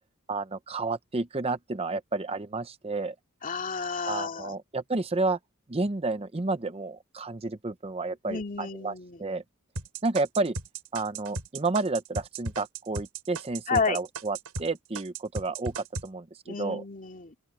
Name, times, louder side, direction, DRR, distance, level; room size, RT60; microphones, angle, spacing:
voice 1, 0.3-3.1 4.1-5.4 5.7-8.9 9.2-9.4 10.0-10.6 10.9-16.8, right 3 dB, 25° right, 0.6 m, -31 dB
voice 2, 3.4-4.5 8.3-9.2 13.7-14.0 16.5-17.4, left 5 dB, 35° left, 2.3 m, -31 dB
sound 1, 9.8-14.7 15.0-16.1, right 3 dB, 90° right, 6.5 m, -36 dB
open air
head